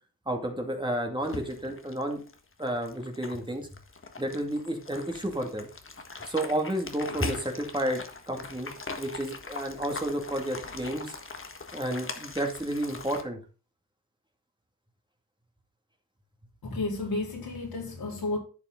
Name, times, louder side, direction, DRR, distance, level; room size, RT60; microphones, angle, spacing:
voice 1, 0.3-2.2 2.6-3.7 4.2-5.7 6.2-11.1 11.7-13.4, right 1 dB, 15° right, 2.3 m, -31 dB
sound 1, 1.2-13.2, left 3 dB, 35° left, 1.6 m, -41 dB
voice 2, 16.6-18.4, left 2 dB, 75° left, 4.1 m, -32 dB
11.5 x 6.8 x 3.8 m
cardioid pair, 70°, 36 cm